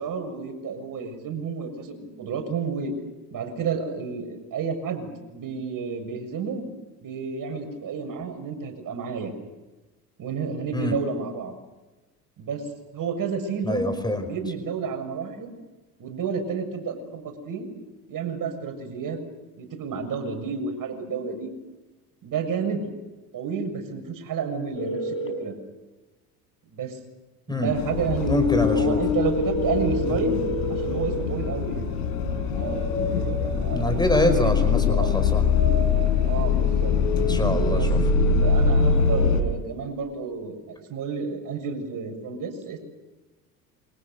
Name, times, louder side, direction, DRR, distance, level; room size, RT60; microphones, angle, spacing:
voice 1, 0.0-2.9 3.3-6.7 7.0-9.3 10.2-11.5 12.4-12.6 12.9-15.5 16.0-17.8 18.1-19.2 19.6-21.5 22.2-22.9 23.3-25.5 26.7-27.0 27.5-30.4 30.7-31.9 32.5-35.1 36.2-36.9 37.7-37.9 38.4-42.8, right 5 dB, 45° right, 5 dB, 7.0 m, -31 dB
voice 2, 13.6-14.3 27.5-27.7 28.3-29.0 33.7-35.4 37.2-38.0, left 1 dB, 10° left, 7 dB, 5.1 m, -25 dB
sound 1, 24.7-25.3 29.2-31.1, right 2 dB, 25° left, 5.8 m, -30 dB
sound 2, 27.7-39.4, left 5 dB, 70° left, 5.0 m, -23 dB
28.5 x 25.0 x 6.9 m, 1.2 s
hypercardioid pair, 70°, 46 cm